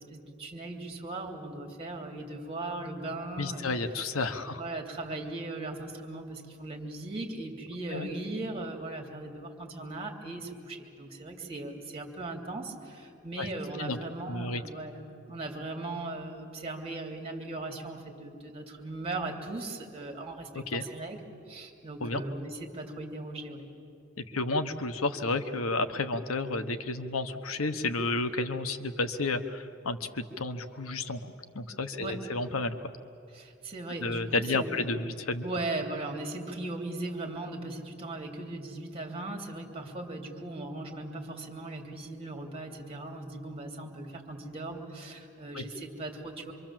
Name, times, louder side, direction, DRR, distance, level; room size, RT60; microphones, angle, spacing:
voice 1, 0.0-3.6 4.4-15.0 15.3-21.2 21.5-23.6 32.0-32.2 33.3-35.0 35.4-46.5, right 2 dB, 30° right, 2 dB, 3.0 m, -38 dB
voice 2, 3.4-4.6 7.9-8.1 13.4-13.5 13.8-14.0 14.3-14.6 20.5-20.8 22.0-22.2 24.2-32.9 34.0-35.4 45.5-45.6, left 3 dB, 80° left, 9 dB, 1.1 m, -31 dB
26.0 x 24.5 x 7.6 m, 2.6 s
head